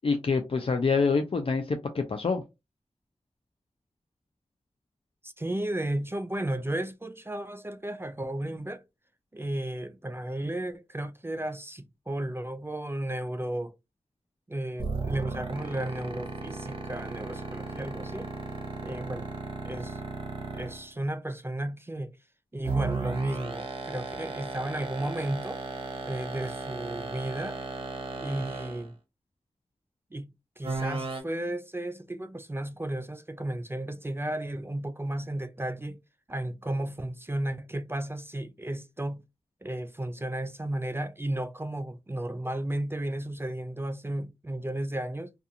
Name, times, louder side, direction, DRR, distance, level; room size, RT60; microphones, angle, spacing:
voice 1, 0.0-2.4, left 4 dB, 55° left, 0.4 m, -26 dB
voice 2, 5.2-8.8 9.3-13.7 14.5-18.3 18.8-19.3 19.7-20.0 20.5-22.1 22.5-25.6 26.0-27.6 28.2-28.9 30.1-30.3 30.6-36.0 36.3-39.2 39.6-45.3, right 1 dB, 20° right, 0.4 m, -34 dB
sound 1, 14.8-20.9 22.6-28.9 30.6-31.2, right 3 dB, 50° right, 0.8 m, -35 dB
2.4 x 2.3 x 2.7 m
cardioid pair, 45°, 12 cm